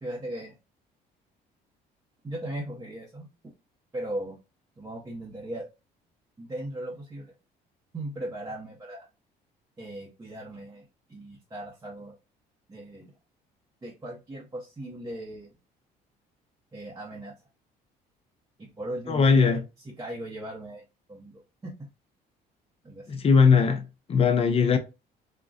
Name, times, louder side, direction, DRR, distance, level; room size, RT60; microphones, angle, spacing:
voice 1, 0.0-0.5 2.2-3.3 3.9-4.4 4.8-5.6 6.4-7.3 7.9-9.1 9.8-12.1 12.7-13.1 13.8-15.5 16.7-17.3 18.6-19.6 19.8-21.9 22.8-23.2, right 1 dB, 20° right, 0.7 m, -38 dB
voice 2, 19.1-19.6 23.1-24.8, left 5 dB, 35° left, 0.6 m, -20 dB
3.8 x 2.1 x 2.4 m
cardioid pair, 110°, 17 cm